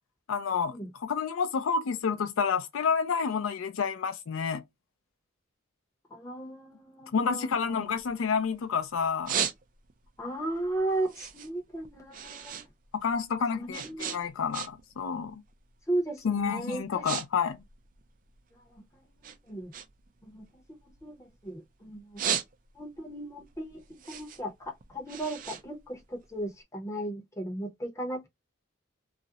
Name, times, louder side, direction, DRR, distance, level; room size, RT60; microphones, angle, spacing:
voice 1, 0.3-0.8 1.0-4.6 7.1-9.4 12.9-15.4 16.2-17.6, left 6 dB, 75° left, 0.4 m, -29 dB
voice 2, 6.1-7.9 10.2-12.6 13.5-14.2 15.9-17.1 18.7-19.7 20.2-22.2 22.7-28.3, right 1 dB, 15° left, 0.6 m, -36 dB
sound 1, 7.5-8.6 9.0-10.1 10.5-12.7 13.0-15.0 15.3-15.6 16.2-16.4 16.7-17.3 17.5-18.8 19.2-21.5 21.9-23.0 23.4-26.5, right 8 dB, 40° right, 0.3 m, -36 dB
2.4 x 2.0 x 2.6 m
head